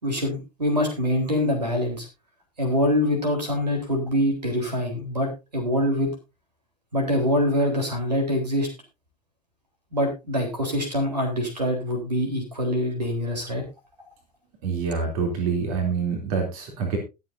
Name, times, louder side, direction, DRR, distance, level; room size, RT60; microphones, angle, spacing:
voice 1, 0.0-2.1 2.6-6.1 6.9-8.7 9.9-13.6, left 1 dB, 85° right, 3 dB, 3.9 m, -24 dB
voice 2, 14.6-17.0, right 5 dB, 60° right, 3 dB, 3.2 m, -26 dB
21.5 x 7.5 x 2.7 m, 0.26 s
figure-of-eight pair, 75°, 20 cm